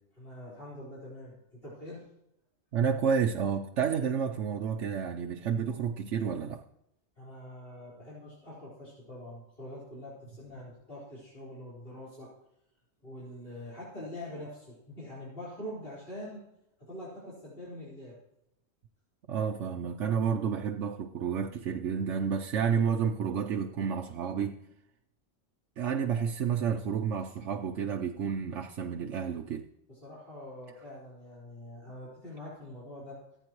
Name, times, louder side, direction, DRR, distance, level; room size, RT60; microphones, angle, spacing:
voice 1, 0.2-2.0 7.2-12.3 13.0-16.4 16.8-18.2 29.9-33.2, left 1 dB, 50° left, 4.6 m, -44 dB
voice 2, 2.7-6.6 19.3-24.6 25.8-29.7, right 7 dB, 70° right, 1.0 m, -30 dB
24.5 x 9.0 x 3.1 m
omnidirectional pair, 1.3 m